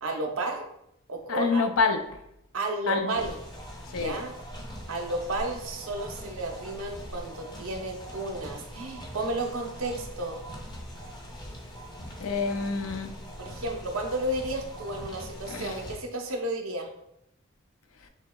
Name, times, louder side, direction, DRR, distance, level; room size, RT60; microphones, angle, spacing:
voice 1, 0.0-0.7 1.1-1.6 2.5-3.4 3.9-4.3 4.9-10.4 13.4-16.9, right 2 dB, 75° right, 0.7 m, -32 dB
voice 2, 1.3-2.2 2.9-3.2 3.9-4.1 12.2-13.3 15.5-15.9 18.0-18.1, left 4 dB, 75° left, 0.5 m, -28 dB
sound 1, 3.1-16.0, equal, 20° left, 0.7 m, -42 dB
6.3 x 2.9 x 2.3 m
head